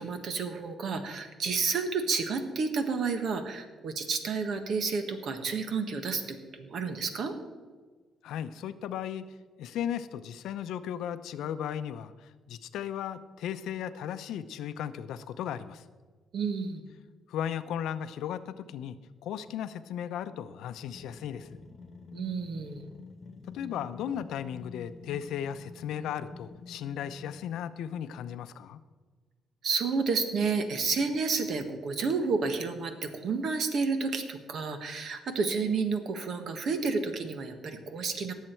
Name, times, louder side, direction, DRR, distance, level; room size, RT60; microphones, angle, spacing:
voice 1, 0.0-7.3 16.3-16.8 22.1-22.9 29.6-38.3, right 4 dB, 65° right, 7 dB, 1.5 m, -30 dB
voice 2, 8.2-9.2 9.6-15.8 17.3-19.0 19.2-21.6 23.5-28.8, left 9 dB, 85° left, 12 dB, 0.6 m, -36 dB
sound 1, 20.9-27.7, left 3 dB, 40° left, 1.1 m, -48 dB
19.0 x 7.4 x 4.5 m, 1.4 s
cardioid pair, 90°, 0 cm